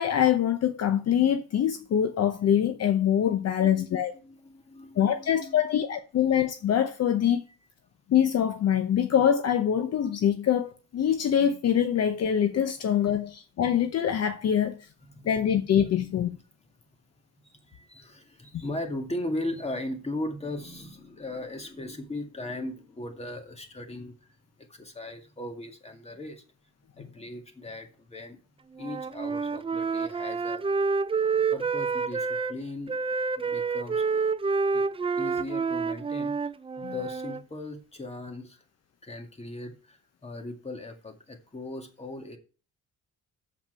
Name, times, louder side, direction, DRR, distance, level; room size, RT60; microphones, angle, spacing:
voice 1, 0.0-4.1 5.0-7.4 8.1-14.9 15.2-16.3 27.0-27.1 36.8-36.9, left 9 dB, 55° left, 0.8 m, -24 dB
voice 2, 3.6-3.9 4.2-5.6 15.1-15.3 17.4-26.4 27.0-28.4 28.8-30.6 31.5-33.0 33.4-34.2 34.7-34.9 35.2-38.6 39.0-42.4, left 1 dB, 20° left, 2.1 m, -38 dB
Wind instrument woodwind instrument, 28.8-32.6 32.9-37.4, right 5 dB, 20° right, 0.4 m, -28 dB
7.4 x 5.8 x 5.7 m
cardioid pair, 90°, 30 cm